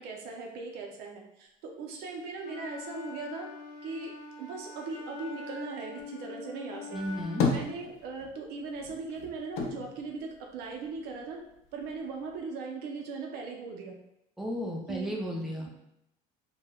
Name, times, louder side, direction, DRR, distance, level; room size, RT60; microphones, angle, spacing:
voice 1, 0.0-3.5 3.8-4.1 4.4-7.0 7.4-11.4 11.7-13.9 14.9-15.1, right 4 dB, 65° right, 1 dB, 0.5 m, -39 dB
Wind instrument woodwind instrument, 2.4-7.5, left 4 dB, 85° left, 1.0 m, -44 dB
sound 1, 6.9-8.4 8.7-11.1 11.5-12.4, left 5 dB, 65° left, 0.5 m, -33 dB
voice 2, 6.9-7.4 14.4-15.7, equal, ahead, -1 dB, 0.4 m, -34 dB
3.1 x 2.1 x 2.3 m, 0.82 s
cardioid pair, 135°, 18 cm